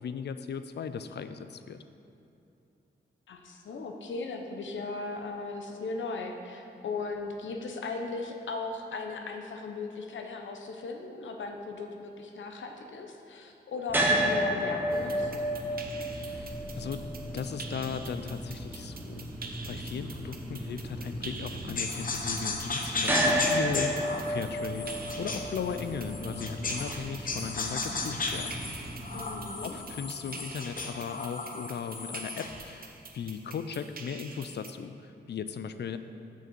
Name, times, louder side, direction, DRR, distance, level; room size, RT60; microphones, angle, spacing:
voice 1, 0.0-1.8 16.1-17.1 17.3-19.3 19.7-28.6 29.6-36.0, left 6 dB, 65° left, 11 dB, 0.5 m, -37 dB
voice 2, 3.3-15.3 29.1-29.8, left 3 dB, 85° left, 4 dB, 0.9 m, -37 dB
sound 1, 13.9-30.0, equal, 10° right, 1.2 m, -33 dB
sound 2, 14.9-34.7, right 4 dB, 50° right, 0.8 m, -47 dB
sound 3, 21.8-27.0 27.3-32.6, left 3 dB, 45° left, 0.9 m, -35 dB
6.6 x 6.5 x 6.9 m, 2.8 s
wide cardioid pair, 105°, 19 cm